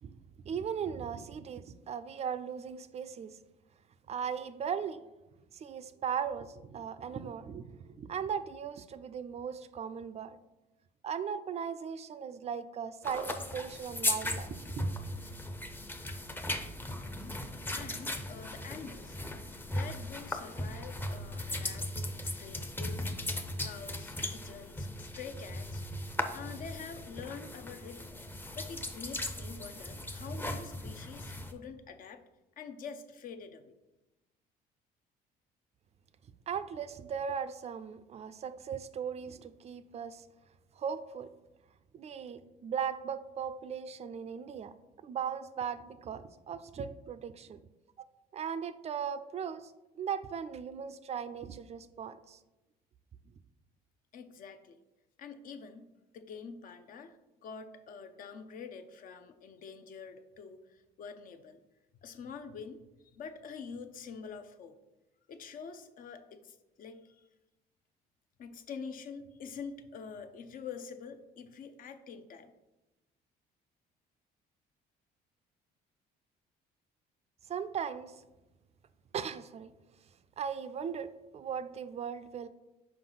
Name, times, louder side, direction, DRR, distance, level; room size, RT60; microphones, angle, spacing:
voice 1, 0.0-3.4 4.1-5.0 5.5-10.4 11.0-14.8 36.5-40.3 40.8-41.3 41.9-44.7 45.0-47.6 48.3-52.4 77.5-78.1 79.1-79.7 80.4-82.5, right 7 dB, 40° right, 12 dB, 0.4 m, -38 dB
sound 1, 13.0-31.5, left 1 dB, 10° left, 0.6 m, -38 dB
voice 2, 17.7-19.2 19.7-23.1 23.6-25.8 26.3-28.1 28.6-32.2 32.6-33.7 54.1-54.8 55.2-55.9 56.1-57.2 57.4-61.6 62.0-62.9 63.1-64.7 65.3-67.3 68.4-72.5, left 5 dB, 55° left, 9 dB, 0.6 m, -46 dB
5.8 x 4.8 x 3.9 m, 1.0 s
cardioid pair, 110°, 17 cm